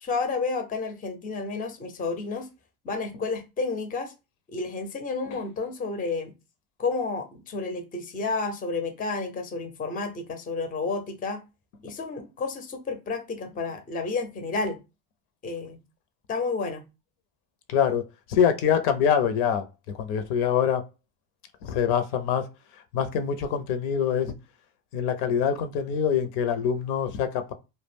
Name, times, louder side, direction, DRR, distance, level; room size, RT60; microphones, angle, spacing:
voice 1, 0.0-2.5 2.8-4.1 4.5-6.3 6.8-11.4 11.8-14.8 15.4-15.8 16.3-16.8, left 4 dB, 20° left, 0.5 m, -31 dB
voice 2, 17.7-19.7 20.0-20.8 21.6-22.4 22.9-24.3 24.9-27.5, left 8 dB, 65° left, 0.6 m, -25 dB
2.2 x 2.1 x 3.3 m
hypercardioid pair, 90°, 50 cm